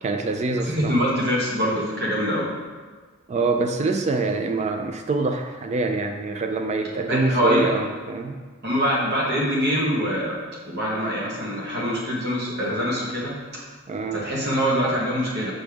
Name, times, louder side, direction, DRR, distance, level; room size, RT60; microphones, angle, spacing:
voice 1, 0.0-1.0 3.3-8.4 13.9-14.3, right 3 dB, 35° right, 6 dB, 0.3 m, -25 dB
voice 2, 0.7-2.5 7.1-7.7 8.6-10.4 10.7-13.4 14.1-15.5, equal, 55° right, -4 dB, 1.2 m, -24 dB
6.2 x 5.2 x 3.5 m, 1.4 s
head